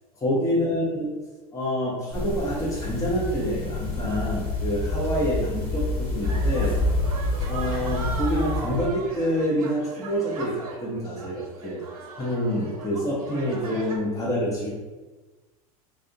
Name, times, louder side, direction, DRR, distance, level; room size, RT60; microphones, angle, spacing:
voice 1, 0.2-1.1 1.5-6.8 7.4-11.8 12.2-14.7, equal, 15° left, -5 dB, 1.0 m, -27 dB
sound 1, 2.1-8.9, left 2 dB, 35° left, 1.4 m, -28 dB
sound 2, 6.2-14.0, right 3 dB, 85° right, 1.0 m, -38 dB
3.1 x 2.7 x 3.7 m, 1.2 s
hypercardioid pair, 90°, 19 cm